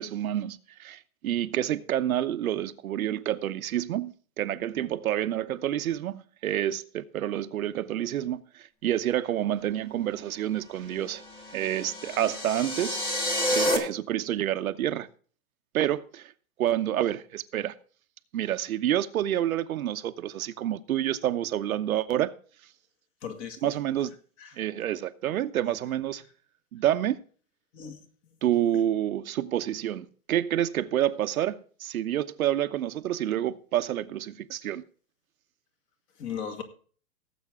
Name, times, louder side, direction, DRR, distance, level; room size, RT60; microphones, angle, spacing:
voice 1, 0.0-11.2 11.5-13.0 13.5-15.1 15.7-16.3 16.6-17.7 18.3-22.3 23.6-24.1 24.6-26.2 26.7-27.2 28.4-34.8, right 11 dB, 65° right, 1.0 m, -28 dB
sound 1, 11.2-13.8, left 1 dB, 10° left, 1.5 m, -29 dB
voice 2, 23.2-23.6 24.4-24.6 27.7-28.0 28.3-28.4 36.2-36.6, left 7 dB, 25° left, 2.1 m, -37 dB
17.5 x 8.0 x 3.6 m
hypercardioid pair, 150°, 45 cm